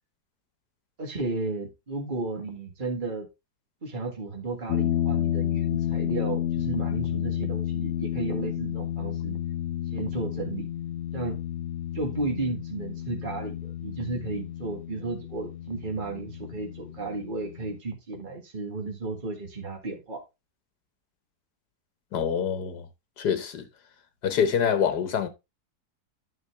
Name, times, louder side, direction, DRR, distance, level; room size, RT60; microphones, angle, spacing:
voice 1, 1.0-3.3 3.8-9.4 9.9-10.7 11.1-11.4 11.9-20.2, right 3 dB, 30° right, 2.1 m, -33 dB
sound 1, 4.7-17.8, left 11 dB, 65° left, 0.7 m, -31 dB
voice 2, 22.1-22.9 23.2-23.7 24.2-25.3, left 7 dB, 80° left, 1.7 m, -25 dB
10.5 x 5.5 x 3.4 m
omnidirectional pair, 1.7 m